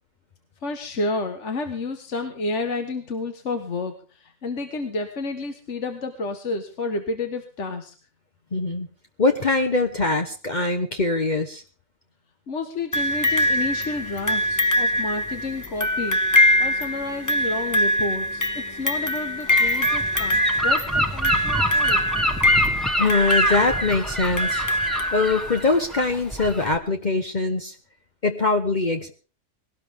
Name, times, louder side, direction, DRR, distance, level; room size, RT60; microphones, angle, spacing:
voice 1, 0.6-7.9 12.5-16.2 16.6-22.0, left 3 dB, 70° left, 6 dB, 1.7 m, -30 dB
voice 2, 8.5-8.9 9.2-11.6 23.0-27.7 28.2-29.1, left 3 dB, 40° left, 4 dB, 1.2 m, -23 dB
sound 1, 12.9-25.8 26.7-26.8, equal, 20° left, 0.7 m, -23 dB
Gull seagull / Wind, 19.5-26.8, equal, ahead, 1.7 m, -27 dB
20.5 x 18.0 x 3.6 m, 0.38 s
omnidirectional pair, 1.3 m